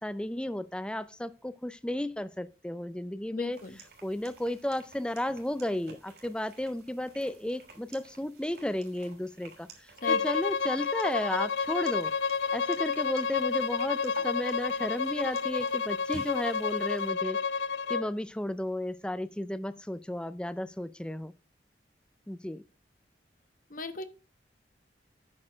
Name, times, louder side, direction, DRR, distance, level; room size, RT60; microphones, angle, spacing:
voice 1, 0.0-3.6 4.0-12.1 12.5-17.4 17.9-21.3 22.3-22.6, left 1 dB, 5° left, 0.4 m, -33 dB
voice 2, 3.3-3.8 10.0-10.2 23.7-24.0, left 2 dB, 50° left, 1.1 m, -37 dB
sound 1, 3.5-17.1, right 3 dB, 60° right, 3.1 m, -52 dB
Bowed string instrument, 10.0-18.1, left 5 dB, 80° left, 0.6 m, -30 dB
8.7 x 6.4 x 5.0 m
head